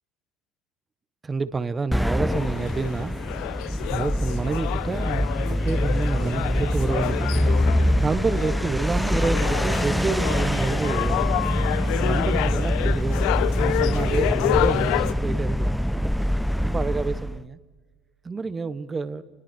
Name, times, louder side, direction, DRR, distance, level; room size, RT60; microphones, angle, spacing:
voice 1, 1.2-3.1 3.9-7.5 8.0-11.4 12.0-13.3 13.6-15.8 16.6-17.6 18.2-19.2, right 4 dB, 25° right, 1.3 m, -28 dB
sound 1, 1.9-17.4, equal, ahead, 1.0 m, -24 dB
sound 2, 2.3-15.1, left 15 dB, 65° left, 0.9 m, -29 dB
30.0 x 21.0 x 6.3 m
hypercardioid pair, 70°, 0 cm